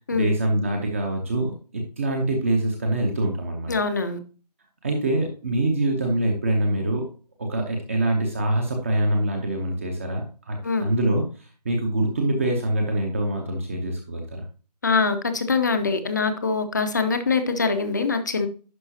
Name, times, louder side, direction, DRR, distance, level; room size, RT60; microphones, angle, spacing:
voice 1, 0.1-3.7 4.8-7.1 7.4-14.4, right 1 dB, 20° right, 3 dB, 0.9 m, -25 dB
voice 2, 3.7-4.2 10.6-10.8 14.8-18.5, left 4 dB, 25° left, 9 dB, 0.7 m, -23 dB
11.0 x 5.4 x 2.8 m, 0.37 s
figure-of-eight pair, 160°, 21 cm